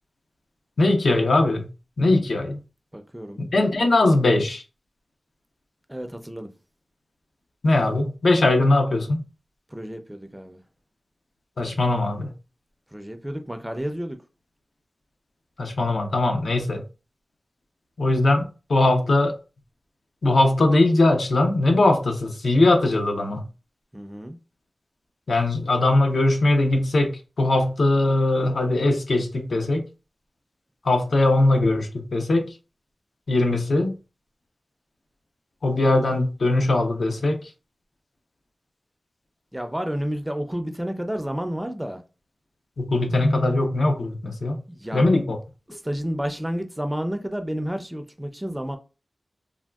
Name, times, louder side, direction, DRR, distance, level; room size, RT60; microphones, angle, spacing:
voice 1, 0.8-1.7 2.0-2.6 3.4-4.6 7.6-9.2 11.6-12.3 15.6-16.8 18.0-19.3 20.2-23.4 25.3-29.8 30.8-32.5 33.3-33.9 35.6-37.5 42.8-44.6 44.9-45.4, left 2 dB, 85° left, 0.6 m, -20 dB
voice 2, 2.9-3.4 5.9-6.5 9.7-10.6 12.9-14.2 23.9-24.4 39.5-42.0 44.7-45.1 45.7-48.8, equal, 10° right, 0.4 m, -30 dB
3.5 x 2.2 x 2.3 m
wide cardioid pair, 90°, 0 cm